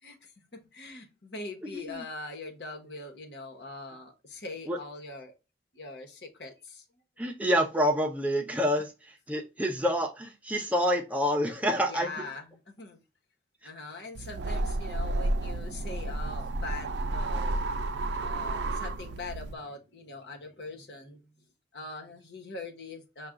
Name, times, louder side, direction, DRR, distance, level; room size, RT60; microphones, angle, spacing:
voice 1, 0.0-5.3 5.7-6.8 11.7-13.0 13.6-17.6 18.2-21.2 21.7-23.3, left 3 dB, 75° left, 1.2 m, -42 dB
voice 2, 1.7-2.0 4.7-4.8 7.2-8.9 9.3-12.1, equal, 10° right, 0.6 m, -27 dB
sound 1, 14.1-19.5, right 2 dB, 80° right, 0.5 m, -31 dB
5.7 x 2.4 x 3.7 m
head